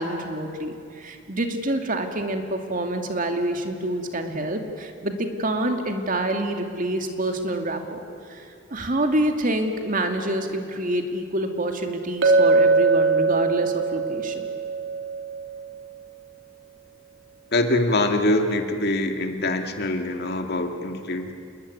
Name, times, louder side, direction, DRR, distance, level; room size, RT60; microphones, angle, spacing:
voice 1, 0.0-14.5, right 1 dB, 45° right, 5 dB, 2.5 m, -27 dB
Chink clink, 12.2-16.4, right 3 dB, 65° right, 3.3 m, -22 dB
voice 2, 17.5-21.3, left 2 dB, 55° left, 5 dB, 2.3 m, -24 dB
28.0 x 21.5 x 9.7 m, 2.4 s
head